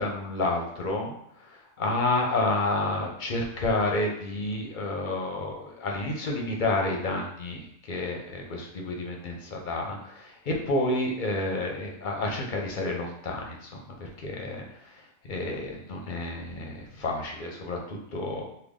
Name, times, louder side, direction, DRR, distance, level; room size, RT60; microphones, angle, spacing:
voice 1, 0.0-18.4, left 2 dB, 50° left, 0 dB, 0.7 m, -30 dB
3.4 x 2.2 x 3.5 m, 0.73 s
omnidirectional pair, 1.2 m